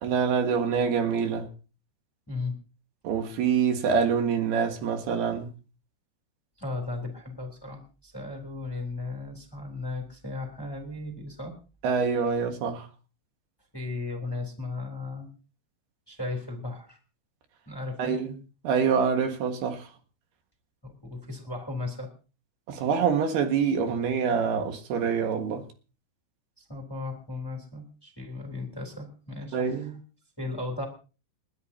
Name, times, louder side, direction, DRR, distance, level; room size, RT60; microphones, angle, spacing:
voice 1, 0.0-1.5 3.0-5.5 11.8-12.9 18.0-18.3 18.6-19.9 22.7-25.6 29.5-30.0, right 6 dB, 80° right, 3.6 m, -26 dB
voice 2, 6.6-11.5 13.7-15.3 16.1-17.0 17.7-18.2 20.8-22.1 26.6-29.9 30.4-30.8, left 3 dB, 5° left, 2.5 m, -36 dB
30.0 x 10.5 x 2.8 m
omnidirectional pair, 4.6 m